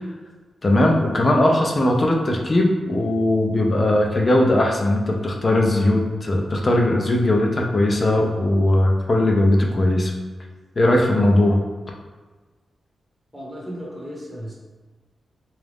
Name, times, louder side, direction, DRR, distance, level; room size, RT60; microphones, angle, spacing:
voice 1, 0.6-10.1 10.8-11.6, left 1 dB, 30° left, 1 dB, 0.5 m, -19 dB
voice 2, 13.3-14.5, equal, ahead, -6 dB, 0.8 m, -35 dB
4.0 x 2.4 x 3.4 m, 1.3 s
wide cardioid pair, 160°, 0 cm